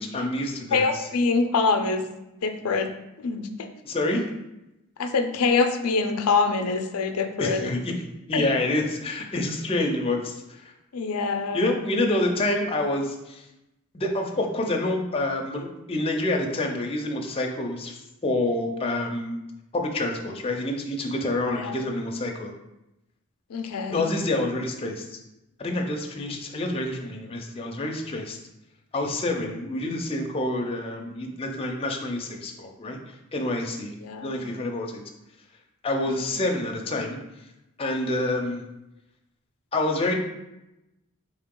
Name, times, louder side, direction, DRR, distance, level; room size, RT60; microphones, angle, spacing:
voice 1, 0.0-1.0 3.8-4.2 7.4-7.9 8.3-10.7 11.5-13.4 13.9-19.4 19.7-22.5 23.9-25.2 25.6-28.4 28.9-33.0 33.3-33.9 34.2-35.0 35.8-37.2 37.8-38.6 39.7-40.1, left 2 dB, 25° left, 2 dB, 0.5 m, -27 dB
voice 2, 0.7-2.1 2.4-2.9 3.2-3.7 5.0-7.7 8.3-8.4 10.9-11.7 21.5-21.8 23.5-24.1 34.0-34.6 36.1-36.5, left 4 dB, 85° left, 7 dB, 0.5 m, -25 dB
4.3 x 2.8 x 3.7 m, 0.92 s
head